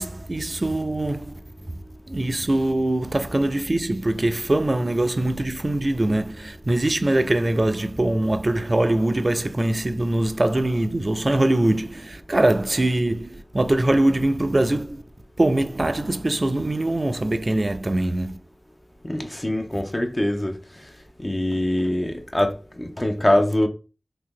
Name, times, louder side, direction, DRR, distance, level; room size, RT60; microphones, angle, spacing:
voice 1, 0.0-1.3 2.1-15.0 15.4-18.4, right 1 dB, 50° right, 0.4 m, -22 dB
voice 2, 19.0-20.6 21.2-23.7, left 1 dB, 30° left, 0.7 m, -23 dB
2.8 x 2.7 x 3.6 m
wide cardioid pair, 40°, 0 cm